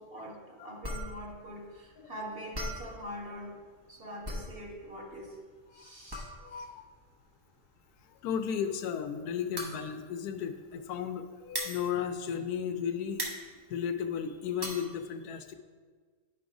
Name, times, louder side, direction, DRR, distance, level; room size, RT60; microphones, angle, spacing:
voice 1, 0.0-3.6 3.9-5.3 5.7-6.6, equal, 40° right, -2 dB, 1.3 m, -44 dB
sound 1, 0.8-12.8 13.1-14.9, equal, 20° right, 0.7 m, -40 dB
voice 2, 6.4-6.8 8.2-13.2 13.7-15.5, left 8 dB, 85° left, 8 dB, 1.1 m, -34 dB
9.9 x 3.9 x 4.7 m, 1.5 s
omnidirectional pair, 1.6 m